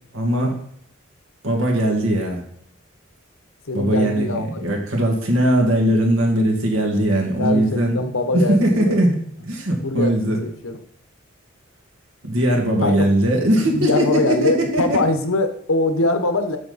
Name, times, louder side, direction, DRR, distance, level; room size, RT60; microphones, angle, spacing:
voice 1, 0.1-0.6 1.4-2.4 3.7-10.4 12.2-15.0, right 1 dB, 90° right, 1 dB, 2.2 m, -20 dB
voice 2, 3.7-4.7 7.4-9.0 9.8-10.8 12.8-13.0 13.7-16.6, left 2 dB, 85° left, 7 dB, 1.1 m, -22 dB
8.8 x 6.4 x 4.1 m, 0.67 s
head